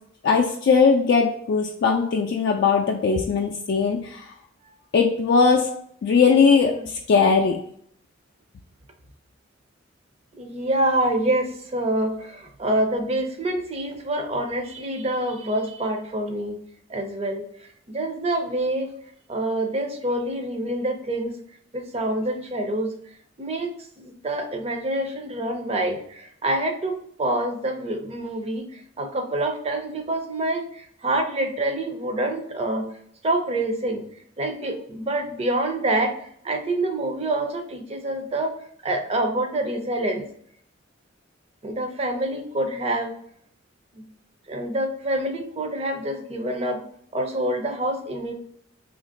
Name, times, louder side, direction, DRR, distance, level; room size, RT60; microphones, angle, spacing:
voice 1, 0.2-4.2 4.9-5.7 6.0-7.6, left 5 dB, 60° left, 0 dB, 0.3 m, -19 dB
voice 2, 6.6-6.9 10.4-16.6 16.9-17.4 17.9-18.9 19.3-21.3 21.7-22.9 23.4-32.9 33.2-34.0 34.4-36.1 36.4-38.5 38.8-40.2 41.6-43.1 44.0-44.1 44.5-46.8 47.1-48.3, right 1 dB, 30° right, 4 dB, 0.5 m, -26 dB
2.9 x 2.5 x 3.8 m, 0.66 s
head